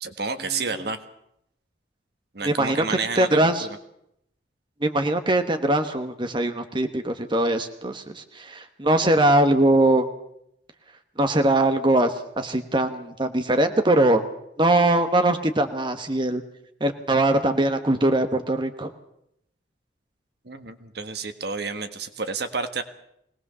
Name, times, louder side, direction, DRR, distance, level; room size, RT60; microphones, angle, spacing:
voice 1, 0.0-1.0 2.3-3.7 20.5-22.8, right 4 dB, 65° right, 8 dB, 1.6 m, -30 dB
voice 2, 2.4-3.7 4.8-10.1 11.2-14.2 14.6-16.4 16.8-18.9, right 1 dB, 25° right, 7 dB, 1.2 m, -21 dB
21.5 x 19.0 x 6.8 m, 0.76 s
head